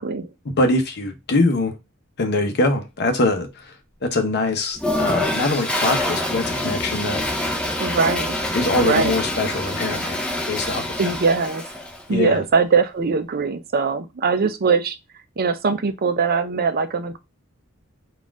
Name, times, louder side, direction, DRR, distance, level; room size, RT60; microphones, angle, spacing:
voice 1, 0.4-1.7 2.2-3.7 4.0-7.2 8.5-10.2 10.5-11.2 12.1-12.4, left 2 dB, 50° left, 0.8 m, -23 dB
Toilet flush, 4.8-12.0, left 1 dB, 5° left, 0.6 m, -26 dB
voice 2, 7.8-8.3 8.8-9.1 11.0-11.6 12.1-15.0 15.4-17.2, right 5 dB, 45° right, 0.5 m, -21 dB
4.1 x 2.5 x 3.5 m
head